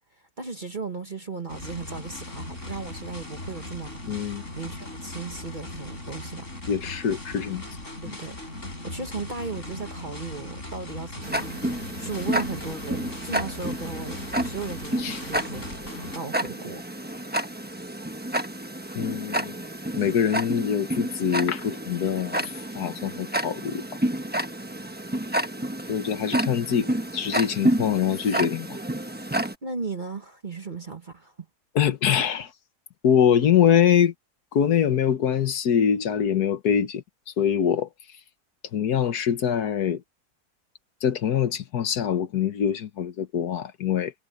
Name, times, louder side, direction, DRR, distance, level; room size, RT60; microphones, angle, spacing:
voice 1, 0.1-6.5 8.0-8.4 8.8-16.8 29.6-31.5, right 4 dB, 30° right, 1.3 m, -36 dB
sound 1, 1.5-16.2, left 1 dB, 45° left, 6.1 m, -39 dB
voice 2, 4.1-4.4 6.7-7.7 15.0-15.2 19.0-19.5 19.9-23.8 25.9-28.8 31.8-32.5 33.0-34.1 34.5-37.0 37.4-37.9 38.7-40.0 41.0-44.1, left 8 dB, 75° left, 1.7 m, -24 dB
Tick-tock, 11.2-29.5, right 1 dB, 5° right, 0.9 m, -30 dB
omnidirectional pair, 1.7 m